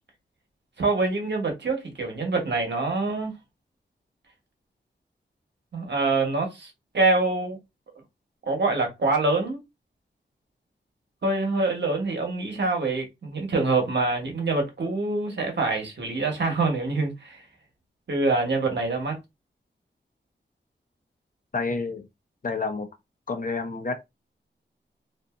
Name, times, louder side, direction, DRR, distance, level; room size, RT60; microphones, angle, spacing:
voice 1, 0.8-3.3 5.7-7.6 8.5-9.6 11.2-17.4 18.1-19.2, right 3 dB, 65° right, 1.0 m, -25 dB
voice 2, 21.5-22.1 22.4-22.9 23.3-24.0, left 4 dB, 45° left, 0.6 m, -29 dB
2.6 x 2.5 x 2.4 m
wide cardioid pair, 80°, 19 cm